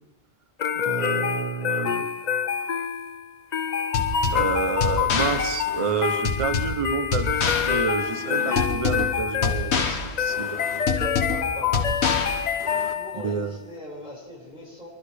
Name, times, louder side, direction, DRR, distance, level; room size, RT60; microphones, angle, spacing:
sound 1, 0.6-13.4, left 8 dB, 50° left, 0.5 m, -27 dB
voice 1, 0.7-2.1 4.3-10.6 13.1-13.5, right 5 dB, 35° right, 9 dB, 0.8 m, -29 dB
sound 2, 3.9-12.9, left 4 dB, 80° left, 1.3 m, -27 dB
voice 2, 11.3-12.3 12.9-14.9, equal, 5° right, -9 dB, 5.5 m, -41 dB
24.5 x 12.0 x 3.4 m, 1.2 s
omnidirectional pair, 1.1 m